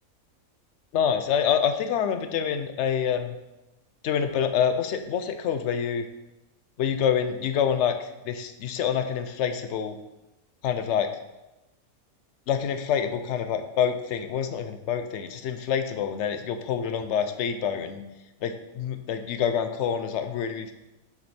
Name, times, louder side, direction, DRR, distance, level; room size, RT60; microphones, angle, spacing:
voice 1, 0.9-3.3 4.0-6.0 6.8-8.0 8.3-10.0 10.6-11.1 12.5-18.0 18.4-20.7, left 8 dB, 65° left, 8 dB, 0.8 m, -26 dB
6.5 x 5.3 x 4.2 m, 0.99 s
omnidirectional pair, 1.5 m